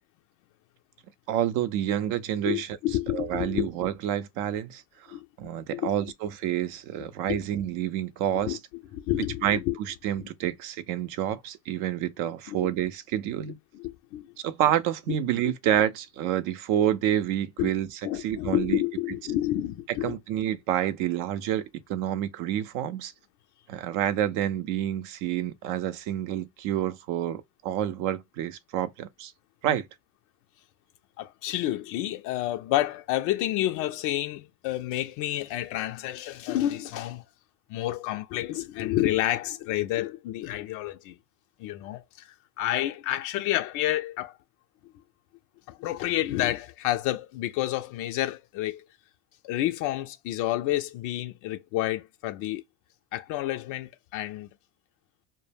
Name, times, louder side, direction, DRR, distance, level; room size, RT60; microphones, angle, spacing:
voice 1, 1.3-2.8 3.1-4.8 5.4-8.6 9.4-13.6 14.4-17.9 18.1-18.8 20.0-23.1 23.7-29.3 29.6-29.9, right 11 dB, 55° right, 0.6 m, -28 dB
voice 2, 2.4-3.7 5.1-5.3 5.7-5.9 7.3-7.4 8.4-8.6 8.9-9.8 10.2-10.3 12.5-12.7 13.4-14.3 17.6-17.7 18.0-20.2 31.2-37.2 37.7-41.2 41.6-44.4 45.7-48.9 49.4-52.6 53.1-54.5, left 14 dB, 55° left, 0.4 m, -29 dB
2.1 x 2.0 x 3.3 m
hypercardioid pair, 95°, 38 cm